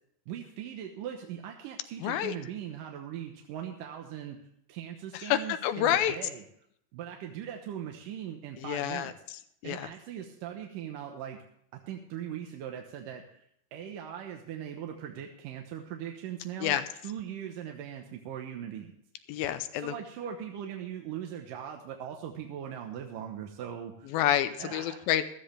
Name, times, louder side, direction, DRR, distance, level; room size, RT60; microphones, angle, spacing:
voice 1, 0.3-4.4 4.7-6.4 6.9-9.1 9.6-11.4 11.9-13.4 13.7-16.8 17.0-18.9 19.8-24.2 24.6-25.2, right 9 dB, 70° right, 3 dB, 2.5 m, -40 dB
voice 2, 2.0-2.3 5.1-6.2 8.6-9.9 16.6-16.8 19.3-19.9 24.1-25.2, left 11 dB, 80° left, 10 dB, 2.5 m, -29 dB
15.5 x 13.0 x 3.3 m, 0.71 s
omnidirectional pair, 4.3 m